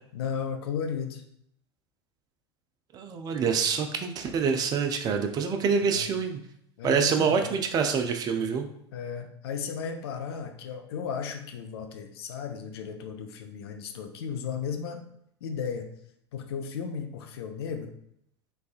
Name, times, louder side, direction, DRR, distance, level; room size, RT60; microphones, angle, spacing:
voice 1, 0.1-1.2 5.8-6.1 6.8-7.5 8.9-15.0 15.4-15.9 16.3-17.9, left 6 dB, 65° left, 6 dB, 0.5 m, -35 dB
voice 2, 2.9-6.4 6.8-8.7, right 6 dB, 25° right, 6 dB, 0.4 m, -26 dB
3.3 x 3.2 x 2.4 m, 0.72 s
figure-of-eight pair, 80°, 14 cm